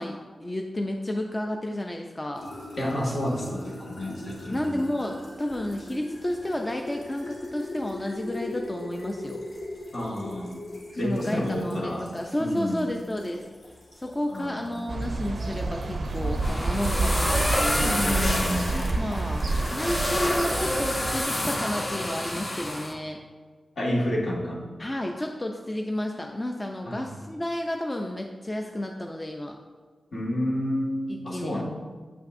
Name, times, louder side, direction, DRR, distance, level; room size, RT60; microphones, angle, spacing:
voice 1, 0.0-2.5 4.5-9.4 10.9-13.4 13.9-18.3 18.9-23.2 24.8-29.6 31.1-31.6, left 1 dB, 20° left, 2 dB, 0.4 m, -31 dB
sound 1, 2.3-20.0, left 2 dB, 90° left, 1.6 m, -41 dB
voice 2, 2.8-4.8 9.9-10.6 10.9-12.1 12.4-12.8 14.3-14.8 17.8-18.8 23.8-24.6 26.8-27.1 30.1-31.6, left 1 dB, 60° left, -3 dB, 1.6 m, -29 dB
sound 2, 14.9-21.2, right 3 dB, 65° right, 0.4 m, -29 dB
sound 3, 16.1-22.9, left 1 dB, 35° left, 1.0 m, -28 dB
8.1 x 5.8 x 2.6 m, 1.5 s
wide cardioid pair, 105°, 0 cm